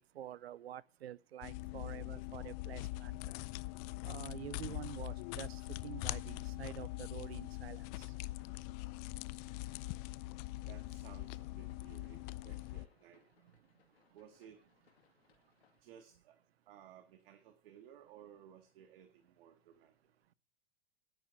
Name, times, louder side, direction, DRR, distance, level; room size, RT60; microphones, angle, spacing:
voice 1, 0.0-3.2 4.0-8.1, right 11 dB, 90° right, 0.6 m, -48 dB
sound 1, 1.4-12.9, left 19 dB, 40° left, 0.5 m, -43 dB
sound 2, 7.5-15.8, left 8 dB, 80° left, 2.4 m, -73 dB
voice 2, 10.7-13.2 14.1-14.6 15.8-16.4 16.7-19.9, right 9 dB, 65° right, 1.9 m, -58 dB
9.9 x 6.9 x 9.0 m
hypercardioid pair, 115°, 30 cm